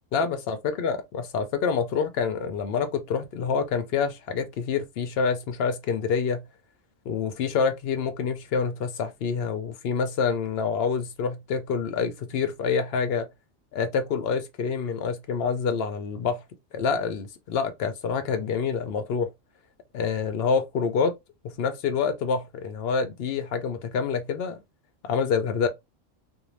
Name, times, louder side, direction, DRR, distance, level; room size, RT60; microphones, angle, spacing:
voice 1, 0.1-6.4 7.1-13.3 13.7-16.4 16.7-19.3 19.9-21.1 21.4-24.6 25.0-25.7, left 5 dB, 60° left, 0.7 m, -27 dB
2.6 x 2.1 x 3.1 m
omnidirectional pair, 1.3 m